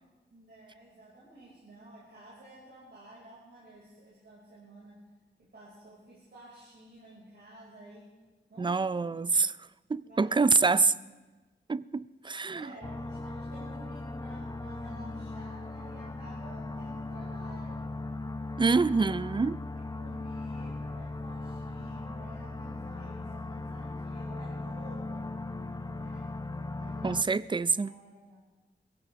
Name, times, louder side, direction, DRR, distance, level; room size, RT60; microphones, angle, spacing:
voice 1, 0.3-5.0 5.4-8.1 8.5-9.5 10.0-11.0 12.5-17.8 19.9-25.3 25.9-26.3 26.8-27.4 27.7-28.4, right 1 dB, 60° right, 5.5 m, -52 dB
voice 2, 8.6-9.5 9.9-10.9 11.7-12.7 18.6-19.6 27.0-27.9, right 4 dB, 25° right, 0.4 m, -26 dB
sound 1, 12.8-27.2, left 2 dB, 20° left, 0.7 m, -38 dB
22.5 x 15.5 x 3.5 m
wide cardioid pair, 85°, 19 cm